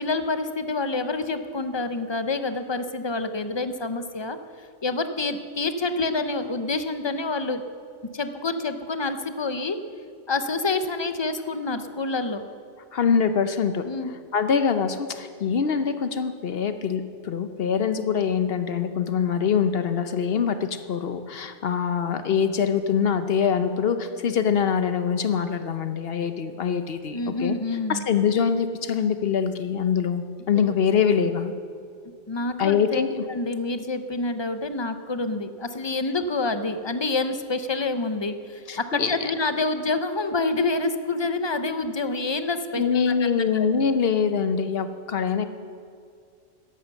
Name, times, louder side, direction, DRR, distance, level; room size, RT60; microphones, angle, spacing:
voice 1, 0.0-7.6 8.1-9.8 10.3-12.4 13.9-14.1 27.1-28.0 30.5-30.6 32.3-33.0 33.3-42.8 43.5-43.7, left 3 dB, 35° left, 9 dB, 0.5 m, -27 dB
voice 2, 12.9-13.8 14.3-27.6 27.9-31.5 32.6-33.2 38.7-39.3 42.8-45.4, left 7 dB, 55° left, 10 dB, 0.8 m, -24 dB
12.0 x 11.0 x 7.1 m, 2.3 s
omnidirectional pair, 1.3 m